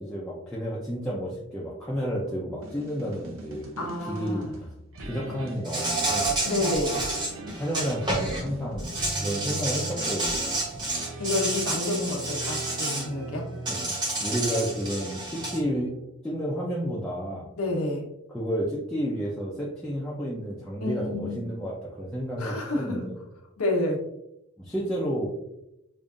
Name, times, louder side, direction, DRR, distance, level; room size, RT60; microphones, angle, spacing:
voice 1, 0.1-4.5 5.0-6.3 7.5-8.9 9.2-10.7 13.7-15.9 16.2-17.5 18.3-23.2 24.6-25.3, equal, 5° left, -7 dB, 0.5 m, -31 dB
sound 1, 2.6-16.1, right 2 dB, 70° right, 0.7 m, -40 dB
voice 2, 3.8-4.5 6.4-7.0 11.2-13.5 17.6-18.0 20.8-21.5 22.4-23.1 23.6-24.0, left 2 dB, 90° left, 0 dB, 1.0 m, -29 dB
Insect, 5.6-8.4 8.8-13.0 13.6-15.6, right 2 dB, 20° right, 0.9 m, -30 dB
5.2 x 2.6 x 2.4 m, 0.86 s
head